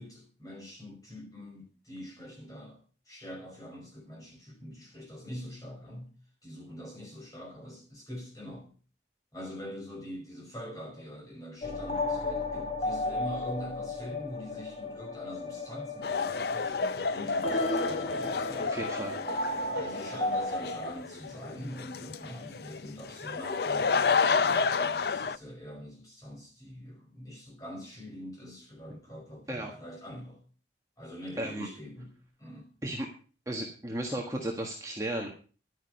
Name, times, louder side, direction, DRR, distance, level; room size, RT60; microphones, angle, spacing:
voice 1, 0.0-2.8 3.1-6.1 6.4-8.7 9.3-16.8 17.1-18.8 19.7-30.4 31.0-32.7, equal, 20° left, 5.6 m, -44 dB
sound 1, 11.6-20.9, left 2 dB, 35° left, 1.2 m, -34 dB
sound 2, 16.0-25.4, left 5 dB, 60° left, 0.5 m, -30 dB
voice 2, 18.7-19.1 29.5-29.7 31.4-31.7 32.8-33.1 33.5-35.3, right 1 dB, 20° right, 1.5 m, -34 dB
11.5 x 9.3 x 5.3 m
head